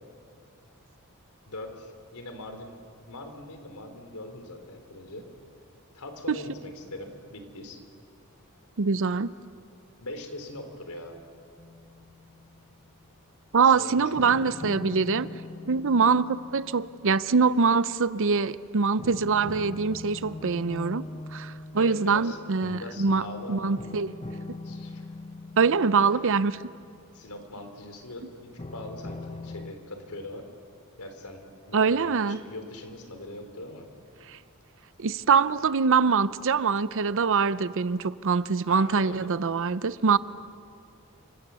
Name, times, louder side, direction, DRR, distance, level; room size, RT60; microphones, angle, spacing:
voice 1, 1.5-2.8 3.1-5.3 5.9-7.8 10.0-11.2 13.6-14.3 21.8-22.4 22.7-23.8 24.6-25.0 27.1-30.5 31.0-33.9 38.7-39.3, left 1 dB, 85° left, 3.6 m, -41 dB
voice 2, 8.8-9.3 13.5-15.3 15.7-23.2 23.5-24.1 25.6-26.6 31.7-32.4 34.3-34.4 35.0-40.2, right 5 dB, 60° right, 0.7 m, -24 dB
sound 1, 11.6-12.8 14.2-18.2 19.0-27.8 28.6-29.7, left 2 dB, 30° left, 0.9 m, -42 dB
29.5 x 26.0 x 7.0 m
head